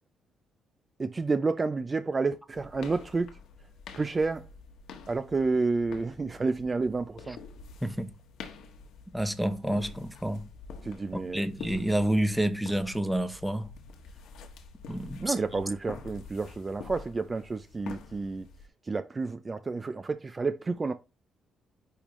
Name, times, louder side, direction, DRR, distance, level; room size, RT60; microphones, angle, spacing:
voice 1, 1.0-3.3 4.0-4.5 5.1-7.4 10.8-11.5 15.2-18.5 18.8-20.9, right 3 dB, 30° right, 0.5 m, -30 dB
sound 1, 2.5-18.7, left 5 dB, 80° left, 1.4 m, -47 dB
voice 2, 7.8-8.1 9.1-10.5 11.1-13.7 14.9-15.3, right 1 dB, 5° right, 0.9 m, -29 dB
10.0 x 3.5 x 3.1 m
cardioid pair, 90°, 0 cm